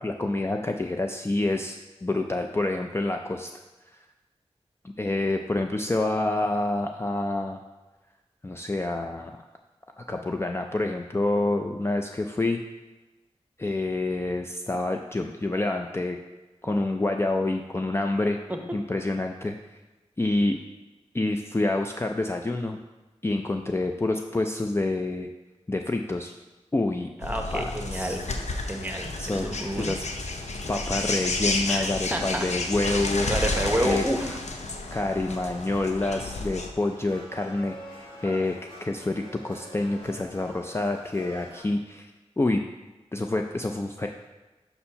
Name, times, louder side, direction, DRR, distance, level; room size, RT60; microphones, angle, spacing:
voice 1, 0.0-3.5 5.0-7.6 8.4-9.4 10.0-12.6 13.6-16.2 16.6-18.4 18.7-19.6 20.2-20.6 21.1-22.8 23.2-25.3 25.7-26.3 26.7-27.1 27.5-28.2 29.2-29.5 29.8-30.0 30.7-33.3 33.8-34.0 34.9-42.1 42.4-42.6 43.1-44.1, left 2 dB, 20° left, 3 dB, 0.4 m, -27 dB
sound 1, 27.2-36.7, left 2 dB, 80° left, 0.6 m, -31 dB
voice 2, 27.2-28.2 28.6-29.9 31.7-32.5 33.3-34.4, right 1 dB, 15° right, 3 dB, 0.9 m, -29 dB
sound 2, 30.6-41.6, equal, 45° left, 2.0 m, -47 dB
5.6 x 4.3 x 5.6 m, 1.1 s
wide cardioid pair, 50°, 11 cm